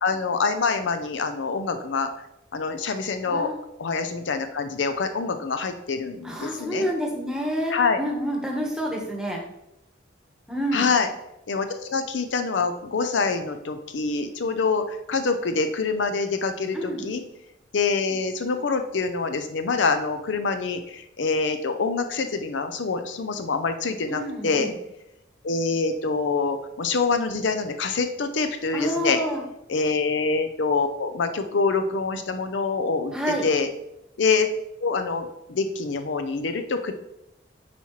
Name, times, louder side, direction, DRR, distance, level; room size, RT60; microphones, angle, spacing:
voice 1, 0.0-2.1 2.5-3.5 3.8-6.9 7.7-8.0 10.7-11.1 11.5-17.2 17.7-24.7 25.4-29.2 29.7-33.1 33.4-33.7 34.2-34.5 34.8-36.9, left 4 dB, 70° left, 8 dB, 0.5 m, -25 dB
voice 2, 6.2-9.4 10.5-10.9 16.7-17.1 24.1-24.8 28.7-29.4 33.1-33.5, equal, 5° right, -1 dB, 1.1 m, -28 dB
9.4 x 4.2 x 3.1 m, 0.85 s
head